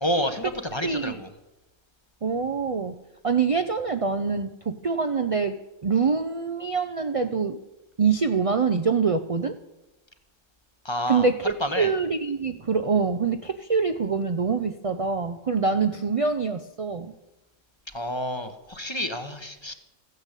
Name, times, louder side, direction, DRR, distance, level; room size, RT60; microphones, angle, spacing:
voice 1, 0.0-1.3 10.8-11.9 17.9-19.7, equal, 25° left, 8 dB, 1.0 m, -29 dB
voice 2, 0.8-1.2 2.2-2.9 3.2-5.6 5.8-7.6 8.0-9.6 11.1-17.1, right 5 dB, 40° right, 9 dB, 0.5 m, -25 dB
14.5 x 9.5 x 8.2 m, 0.99 s
omnidirectional pair, 1.3 m